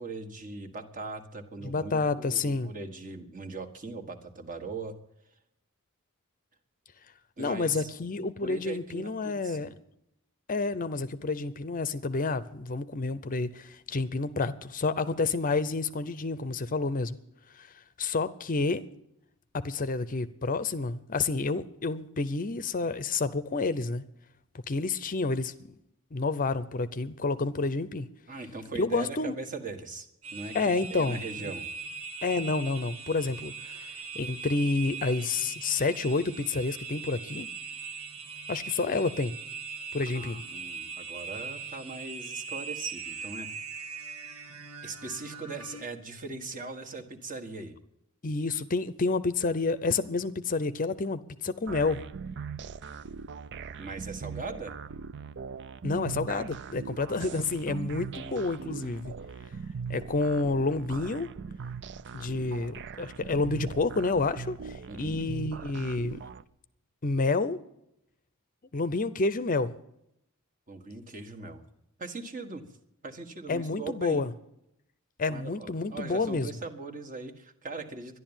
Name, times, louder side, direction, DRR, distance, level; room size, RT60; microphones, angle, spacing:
voice 1, 0.0-5.0 7.4-7.9 8.4-9.7 28.3-30.6 30.9-31.7 40.1-43.5 44.8-47.7 53.8-54.7 64.9-65.3 70.7-71.6 72.0-72.6 73.0-74.3 75.3-78.2, right 3 dB, 40° right, 1.6 m, -40 dB
voice 2, 1.6-2.7 7.4-9.7 10.5-17.2 17.5-17.7 18.0-18.9 19.5-24.0 24.7-25.5 26.1-28.1 28.7-29.4 30.5-31.5 32.2-37.5 38.5-39.4 39.9-40.4 48.2-52.0 55.8-59.1 59.9-61.3 62.1-66.2 67.0-67.6 68.7-69.7 73.5-74.3 75.2-76.5, left 3 dB, 40° left, 0.6 m, -29 dB
sound 1, 30.2-45.8, right 5 dB, 85° right, 2.3 m, -40 dB
sound 2, 51.7-66.4, right 5 dB, 55° right, 0.5 m, -40 dB
12.5 x 11.0 x 8.9 m
head